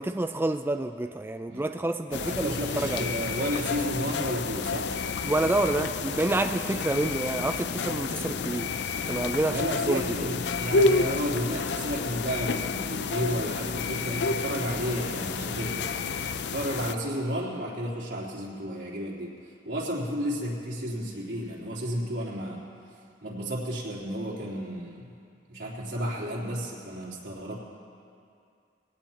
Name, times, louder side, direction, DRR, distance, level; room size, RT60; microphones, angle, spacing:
voice 1, 0.0-3.1 5.2-8.7 9.1-10.3, right 2 dB, 15° right, 7 dB, 0.4 m, -28 dB
sound 1, 2.1-17.0, left 4 dB, 70° left, 0.5 m, -30 dB
voice 2, 2.2-4.9 8.1-8.5 9.5-16.1 16.5-19.4 19.6-22.6 23.2-25.1 25.5-27.6, equal, 80° right, -5 dB, 3.5 m, -32 dB
22.5 x 18.0 x 3.0 m, 2.4 s
head